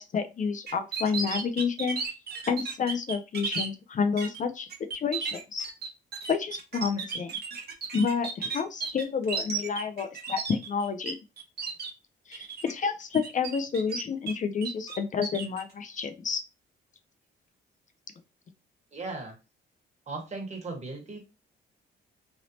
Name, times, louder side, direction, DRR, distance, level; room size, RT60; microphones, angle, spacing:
voice 1, 0.0-2.0 2.5-4.7 4.9-5.7 6.3-7.3 7.9-11.2 12.3-16.4, left 5 dB, 40° left, 7 dB, 0.5 m, -29 dB
sound 1, 0.7-3.7 4.2-4.4 4.7-11.1 11.4-11.9 12.3-12.7 13.1-14.3 14.6-15.6, right 5 dB, 55° right, 1.0 m, -34 dB
voice 2, 18.9-19.3 20.1-21.2, right 3 dB, 35° right, 0 dB, 1.5 m, -37 dB
3.1 x 2.7 x 2.8 m, 0.28 s
cardioid pair, 90°, 20 cm